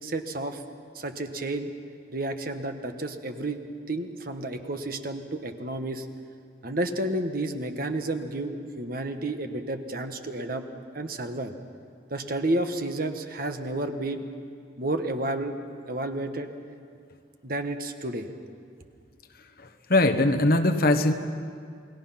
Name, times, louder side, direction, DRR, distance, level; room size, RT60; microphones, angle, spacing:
voice 1, 0.0-0.6 0.9-1.7 2.1-6.1 6.6-10.6 10.9-11.5 12.1-14.2 14.8-15.6 15.9-16.5 17.4-18.3, right 1 dB, 50° right, 6 dB, 1.3 m, -31 dB
voice 2, 19.9-21.1, left 2 dB, 50° left, 7 dB, 1.3 m, -20 dB
29.0 x 19.5 x 5.8 m, 2.2 s
head